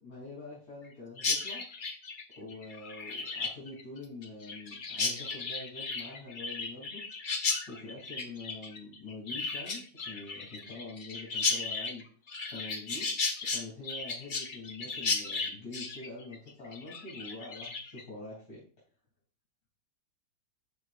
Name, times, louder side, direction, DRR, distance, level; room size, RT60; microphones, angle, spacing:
voice 1, 0.0-1.6 2.4-7.0 7.7-12.0 12.5-18.6, left 2 dB, 75° left, -8 dB, 3.8 m, -45 dB
Chirp tweet, 1.2-18.0, left 4 dB, 45° left, 0.7 m, -35 dB
11.0 x 6.2 x 2.5 m, 0.42 s
omnidirectional pair, 1.9 m